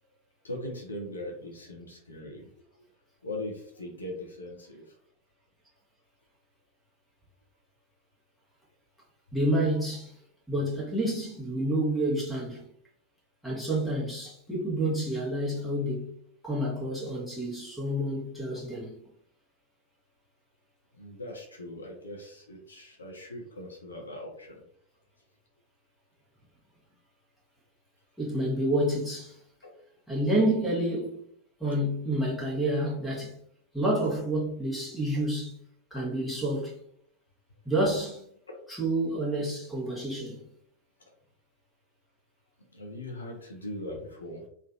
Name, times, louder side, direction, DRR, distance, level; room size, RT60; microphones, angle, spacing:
voice 1, 0.4-2.5 2.7-2.8 3.2-5.0 18.7-18.8 20.9-24.6 29.6-29.7 36.0-36.1 38.5-38.6 42.7-44.5, left 1 dB, 75° left, 0.7 m, -40 dB
voice 2, 9.3-10.1 10.5-12.7 13.4-16.1 16.4-19.0 28.2-29.3 30.1-31.2 31.6-33.4 33.7-35.6 35.9-36.8 37.6-38.2 38.7-40.4, right 1 dB, ahead, 1.2 m, -29 dB
3.2 x 2.5 x 2.5 m
figure-of-eight pair, 90°, 0 cm